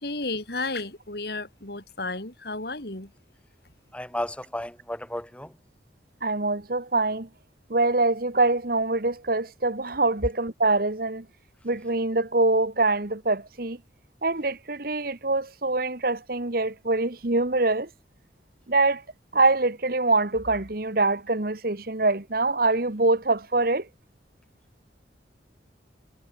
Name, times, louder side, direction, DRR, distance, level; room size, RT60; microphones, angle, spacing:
voice 1, 0.0-3.1, left 3 dB, 60° left, 3.2 m, -33 dB
voice 2, 3.9-5.5, left 1 dB, 5° left, 1.7 m, -33 dB
voice 3, 6.2-7.3 7.7-11.2 11.6-13.8 14.2-17.9 18.7-19.0 19.3-23.9, right 2 dB, 50° right, 1.6 m, -24 dB
head